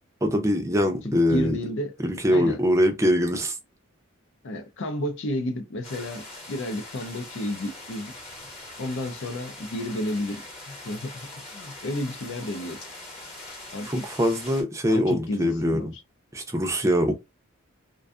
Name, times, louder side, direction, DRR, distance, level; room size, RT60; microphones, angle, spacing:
voice 1, 0.2-1.6 2.0-3.6 13.8-15.9 16.3-17.1, equal, 15° right, 0.5 m, -23 dB
voice 2, 1.0-1.9 2.3-2.6 4.4-8.1 8.8-10.4 10.7-12.8 13.7-14.0 14.9-16.0, left 1 dB, 60° left, 0.5 m, -31 dB
sound 1, 5.8-14.6, left 2 dB, 30° left, 1.0 m, -42 dB
2.5 x 2.3 x 2.3 m
head